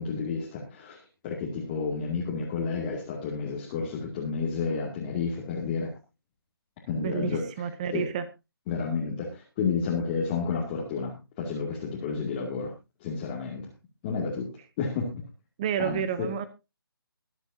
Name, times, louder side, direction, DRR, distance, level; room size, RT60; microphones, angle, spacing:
voice 1, 0.0-5.9 6.9-7.4 7.9-8.0 8.7-12.7 13.0-13.7 14.0-14.5 14.8-15.2 15.8-16.3, left 5 dB, 20° left, -3 dB, 2.3 m, -31 dB
voice 2, 7.0-8.2 15.6-16.5, right 8 dB, 20° right, 13 dB, 0.6 m, -30 dB
23.0 x 8.1 x 2.7 m, 0.26 s
figure-of-eight pair, 160°, 13 cm